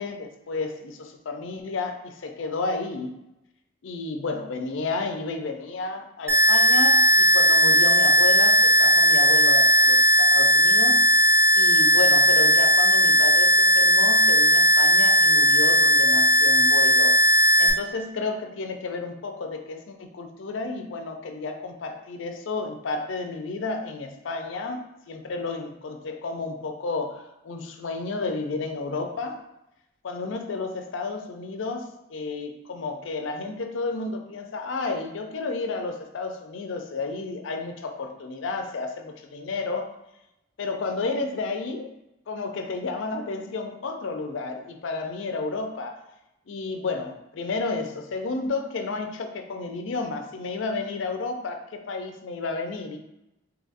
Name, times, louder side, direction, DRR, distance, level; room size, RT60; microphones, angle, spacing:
voice 1, 0.0-3.1 3.8-10.0 10.3-11.1 11.5-17.2 17.6-29.4 30.0-39.9 40.6-41.9 42.3-46.0 46.5-53.0, left 3 dB, 75° left, 5 dB, 0.4 m, -31 dB
sound 1, 6.3-17.7, equal, 15° right, 0.3 m, -17 dB
2.8 x 2.5 x 3.9 m, 0.88 s
head